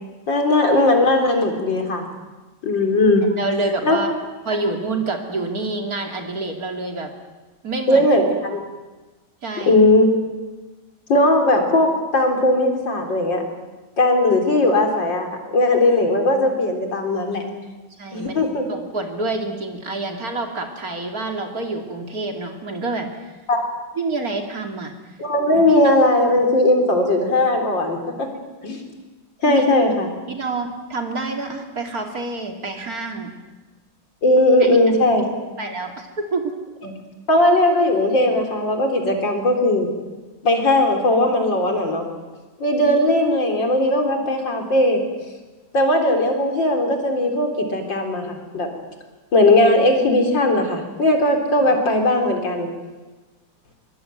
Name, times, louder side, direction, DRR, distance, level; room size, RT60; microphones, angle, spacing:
voice 1, 0.3-2.1 2.6-3.2 3.8-4.0 7.9-8.6 9.7-10.1 11.1-13.4 14.0-17.4 18.1-18.7 23.5-23.6 25.2-28.3 28.6-28.8 29.4-30.1 34.2-35.2 37.3-39.9 40.4-42.1 42.6-45.0 45.7-48.7 49.3-52.7, left 1 dB, 75° left, 3 dB, 4.5 m, -18 dB
voice 2, 3.4-4.1 4.4-7.1 7.6-8.1 9.4-9.8 18.0-18.4 18.7-23.1 24.0-24.9 25.5-25.7 28.3-28.4 29.4-29.6 30.3-33.3 34.6-34.7 35.6-36.5 51.6-51.7, right 3 dB, 50° right, 3 dB, 3.4 m, -27 dB
24.0 x 22.5 x 9.3 m, 1.2 s
omnidirectional pair, 2.0 m